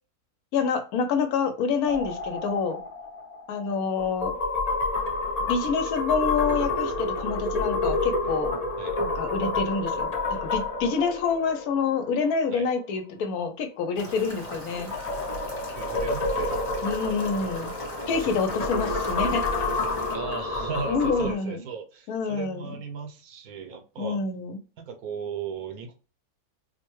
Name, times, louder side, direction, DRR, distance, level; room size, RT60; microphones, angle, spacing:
voice 1, 0.5-2.8 3.5-4.3 5.5-8.5 9.0-14.9 16.8-17.7 18.1-19.4 20.9-21.6 22.1-22.8 24.0-24.6, left 5 dB, 80° left, 7 dB, 1.1 m, -27 dB
sound 1, 1.9-12.5 14.4-21.3, left 3 dB, 45° left, 0.5 m, -29 dB
sound 2, 14.0-20.2, equal, 25° left, 0.9 m, -40 dB
voice 2, 15.7-16.6 20.1-24.2 24.8-26.0, right 6 dB, 75° right, 7 dB, 1.1 m, -36 dB
4.5 x 2.1 x 3.0 m, 0.36 s
omnidirectional pair, 1.6 m